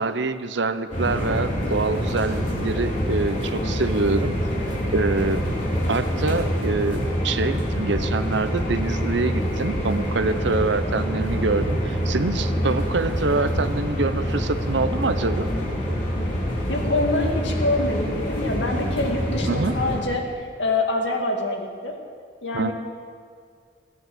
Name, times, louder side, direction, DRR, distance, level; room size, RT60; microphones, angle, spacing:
voice 1, 0.0-4.4 4.9-5.4 5.9-15.5 19.5-19.8 22.5-22.7, right 3 dB, 70° right, 11 dB, 0.8 m, -25 dB
sound 1, 0.9-20.0, equal, 45° left, 4.1 m, -26 dB
voice 2, 16.7-20.3 20.6-22.0 22.4-22.7, left 2 dB, 70° left, 2 dB, 2.2 m, -25 dB
17.0 x 9.8 x 8.0 m, 2.1 s
head